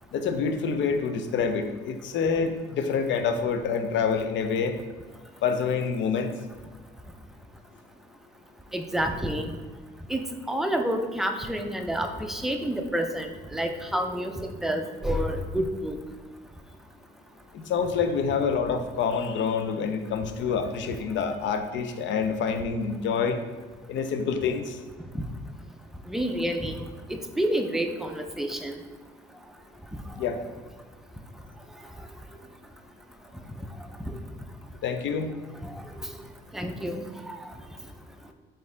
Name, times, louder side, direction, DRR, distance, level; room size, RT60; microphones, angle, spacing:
voice 1, 0.1-4.8 5.4-6.3 17.5-23.4 23.9-24.8 30.2-30.4 34.8-35.3, left 6 dB, 70° left, 7 dB, 0.5 m, -27 dB
voice 2, 8.7-9.6 10.1-16.0 25.1-25.2 26.1-26.8 27.1-28.8 29.9-30.0 34.0-34.1 35.6-36.1 36.5-37.5, equal, ahead, 5 dB, 0.4 m, -29 dB
4.0 x 2.6 x 3.8 m, 1.4 s
cardioid pair, 90°, 20 cm